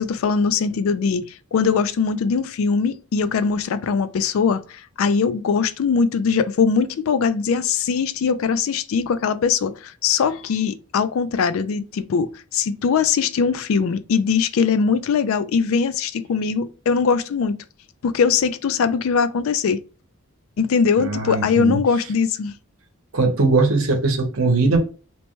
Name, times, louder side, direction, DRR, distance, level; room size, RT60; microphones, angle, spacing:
voice 1, 0.0-17.6 18.0-19.8 20.6-22.5, left 5 dB, 70° left, 0.3 m, -21 dB
voice 2, 21.0-21.8 23.1-24.8, right 3 dB, 65° right, 0.8 m, -20 dB
2.9 x 2.1 x 3.0 m
head